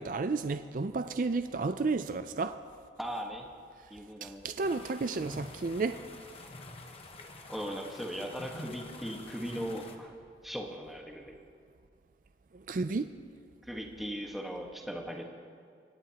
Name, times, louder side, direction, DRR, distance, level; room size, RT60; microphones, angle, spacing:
voice 1, 0.0-2.6 4.2-6.0 12.5-13.1, right 3 dB, 50° right, 9 dB, 0.4 m, -32 dB
voice 2, 3.0-3.5 3.9-4.4 7.5-10.1 10.4-11.4 13.6-15.2, equal, ahead, 0 dB, 1.4 m, -38 dB
sound 1, 4.6-10.0, left 2 dB, 35° left, 1.2 m, -47 dB
24.5 x 17.5 x 2.9 m, 2.2 s
head